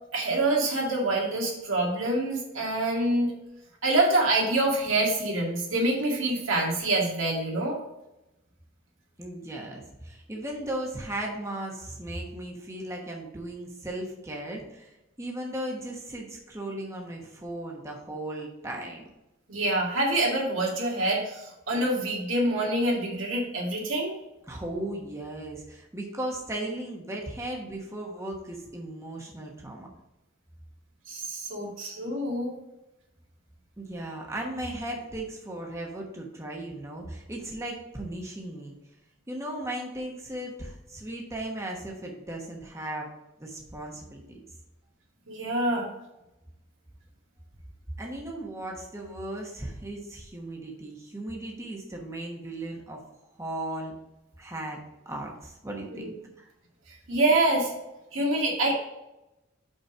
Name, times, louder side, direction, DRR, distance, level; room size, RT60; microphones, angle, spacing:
voice 1, 0.1-3.3 3.8-7.8 19.5-24.1 31.1-32.5 45.3-45.9 55.9-56.1 56.9-57.7 58.1-58.7, right 2 dB, 90° right, -2 dB, 2.1 m, -26 dB
voice 2, 9.2-19.1 24.5-29.9 33.8-38.8 39.3-43.1 43.4-44.4 48.0-53.0 53.3-53.9 54.4-54.8 55.0-56.5, right 1 dB, 15° right, -1 dB, 1.1 m, -36 dB
5.4 x 5.0 x 5.0 m, 0.94 s
head